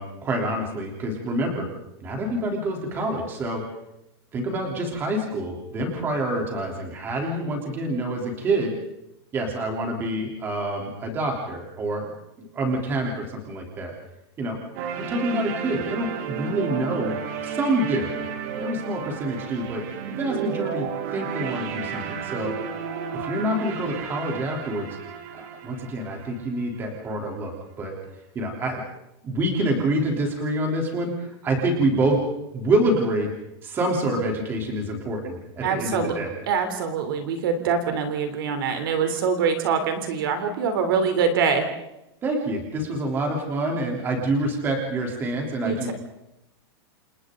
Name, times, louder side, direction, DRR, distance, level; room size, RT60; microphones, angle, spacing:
voice 1, 0.0-1.7 2.0-3.6 4.3-8.7 9.3-13.9 14.4-14.6 15.0-17.2 17.4-18.1 18.6-20.9 21.1-22.5 23.1-24.9 25.3-27.5 27.8-28.0 28.4-28.8 29.2-32.2 32.5-33.3 33.6-36.3 42.2-45.9, right 1 dB, 15° right, 1 dB, 3.5 m, -27 dB
sound 1, 14.8-26.8, right 8 dB, 35° right, 1.9 m, -32 dB
voice 2, 35.6-36.1 36.5-41.7 45.6-45.9, right 6 dB, 55° right, 7 dB, 3.5 m, -24 dB
29.0 x 28.5 x 3.9 m, 0.87 s
supercardioid pair, 180°, 14 cm